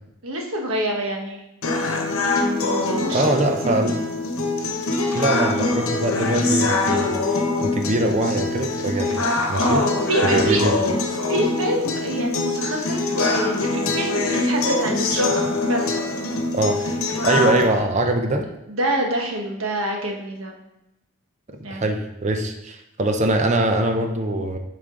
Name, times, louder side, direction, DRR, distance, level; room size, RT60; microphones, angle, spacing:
voice 1, 0.2-1.4 3.0-3.4 3.6-3.8 9.6-10.6 11.3-16.0 17.3-17.8 18.7-20.6 21.6-21.8, right 1 dB, 70° right, 1 dB, 1.2 m, -26 dB
sound 1, 1.6-17.6, left 2 dB, 70° left, 1.1 m, -23 dB
voice 2, 3.1-3.9 5.1-9.2 9.5-9.8 10.2-10.8 16.5-16.8 17.2-18.5 21.7-24.6, right 2 dB, 30° right, 5 dB, 0.6 m, -22 dB
8.3 x 4.9 x 3.8 m, 0.89 s
head